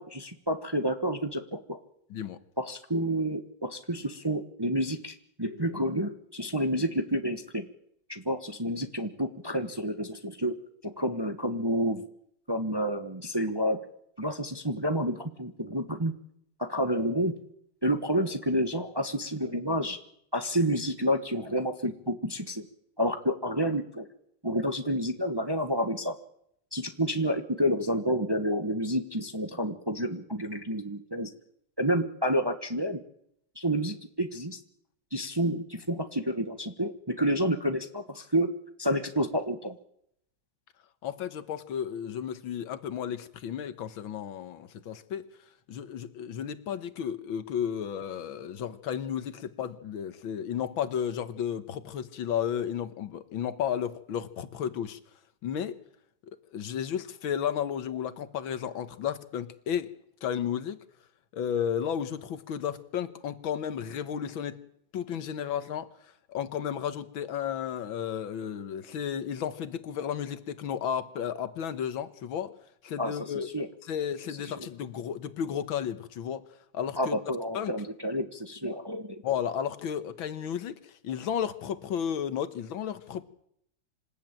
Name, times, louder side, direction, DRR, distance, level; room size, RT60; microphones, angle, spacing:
voice 1, 0.0-1.8 2.6-7.7 8.1-10.5 10.8-12.0 12.5-13.8 14.2-16.1 16.6-17.4 17.8-20.0 20.3-22.7 23.0-24.0 24.4-26.1 26.7-31.3 31.8-33.0 33.6-34.6 35.1-38.5 38.8-39.8 73.0-73.2 73.5-73.7 74.4-74.5 77.0-79.2, equal, 15° right, 7 dB, 1.0 m, -29 dB
voice 2, 41.0-45.3 45.7-55.0 55.4-55.7 56.5-59.9 60.2-60.8 61.3-64.6 64.9-65.9 66.3-72.5 72.8-73.5 73.8-76.4 76.7-77.2 77.5-77.8 79.2-83.2, left 8 dB, 80° left, 12 dB, 2.0 m, -33 dB
26.5 x 13.5 x 9.0 m, 0.73 s
omnidirectional pair, 2.1 m